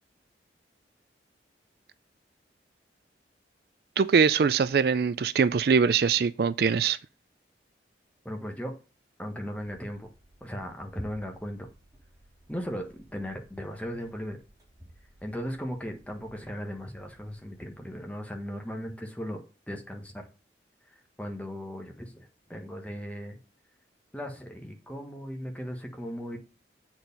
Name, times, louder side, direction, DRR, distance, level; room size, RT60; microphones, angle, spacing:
voice 1, 4.0-7.0, right 6 dB, 55° right, 0.3 m, -23 dB
voice 2, 8.2-8.7 9.2-10.1 10.4-11.7 12.5-12.8 13.1-14.4 15.2-19.4 19.7-20.3 20.9-23.4 24.1-26.4, equal, 10° left, 1.3 m, -37 dB
sound 1, 9.6-18.2, equal, 20° right, 3.2 m, -52 dB
7.8 x 4.4 x 5.4 m
head